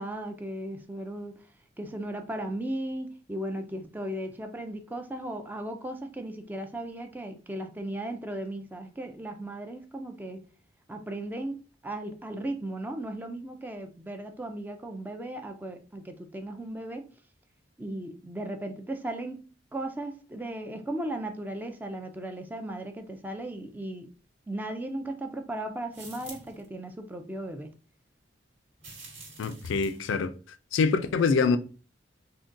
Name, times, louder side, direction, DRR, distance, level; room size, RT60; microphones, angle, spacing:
voice 1, 0.0-1.4 1.8-10.4 10.9-17.1 17.8-19.4 19.7-24.1 24.5-27.7, right 1 dB, 10° right, 0.3 m, -36 dB
sound 1, 25.9-26.6 28.8-30.1, right 3 dB, 75° right, 1.3 m, -47 dB
voice 2, 29.4-30.3 30.7-31.6, left 4 dB, 80° left, 0.4 m, -25 dB
3.7 x 2.2 x 2.5 m
head